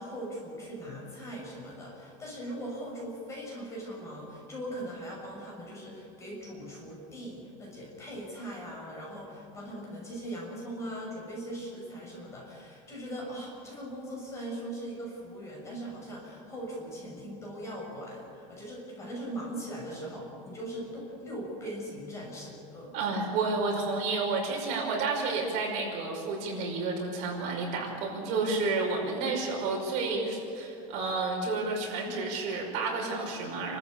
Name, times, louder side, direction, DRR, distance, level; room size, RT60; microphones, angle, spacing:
voice 1, 0.0-23.0, right 1 dB, 20° left, -2 dB, 6.3 m, -40 dB
voice 2, 22.9-33.8, right 3 dB, 50° right, 0 dB, 5.3 m, -30 dB
28.5 x 14.0 x 8.3 m, 3.0 s
cardioid pair, 175°, 16 cm